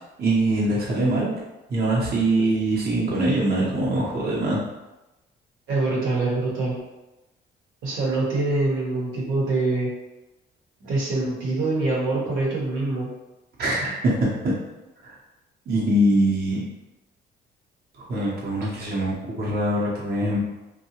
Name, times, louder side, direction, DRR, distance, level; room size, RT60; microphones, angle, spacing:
voice 1, 0.2-1.3 1.7-4.6 13.6-14.5 15.0-15.1 15.7-16.6 18.0-20.4, right 1 dB, 50° right, -6 dB, 0.8 m, -23 dB
voice 2, 5.7-6.8 7.8-9.9 10.8-13.1 18.6-18.7, right 2 dB, 85° right, -4 dB, 1.0 m, -24 dB
2.7 x 2.3 x 2.8 m, 1.0 s
cardioid pair, 90°, 20 cm